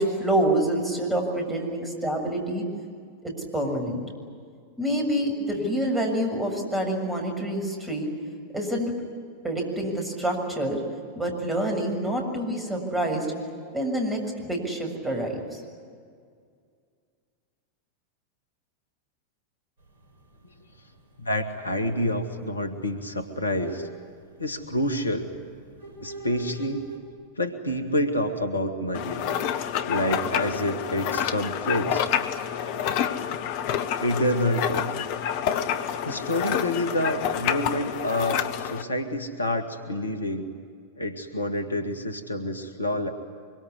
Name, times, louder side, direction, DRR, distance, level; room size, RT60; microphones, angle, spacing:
voice 1, 0.0-2.7 3.2-4.0 4.8-8.1 8.5-8.9 9.4-10.8 11.2-13.3 13.7-15.6, right 1 dB, 10° right, 2 dB, 6.9 m, -27 dB
sound 1, 19.8-27.0, right 1 dB, 60° right, 6.0 m, -44 dB
voice 2, 21.2-23.9 24.4-25.3 26.0-26.9 27.4-29.2 29.9-32.0 34.0-34.8 36.0-40.5 41.0-43.1, left 1 dB, 80° left, 7 dB, 1.8 m, -28 dB
sound 2, 28.9-38.8, left 9 dB, 45° left, 1.2 m, -28 dB
24.5 x 23.5 x 9.9 m, 2.1 s
figure-of-eight pair, 90°, 0 cm